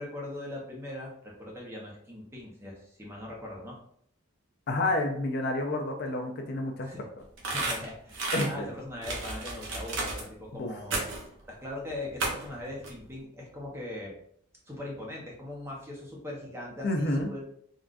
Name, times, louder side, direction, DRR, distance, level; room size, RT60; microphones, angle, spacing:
voice 1, 0.0-3.8 6.8-7.0 7.5-11.1 11.5-14.1 14.7-17.4, left 1 dB, 15° right, -3 dB, 0.7 m, -40 dB
voice 2, 4.7-6.9 8.3-8.7 10.6-10.7 16.8-17.3, left 2 dB, 50° left, 3 dB, 0.4 m, -29 dB
sound 1, 7.4-8.5 9.0-10.2 10.9-11.3 12.2-12.5 12.8-12.9, right 2 dB, 65° right, 0.8 m, -32 dB
3.7 x 2.3 x 2.4 m, 0.67 s
head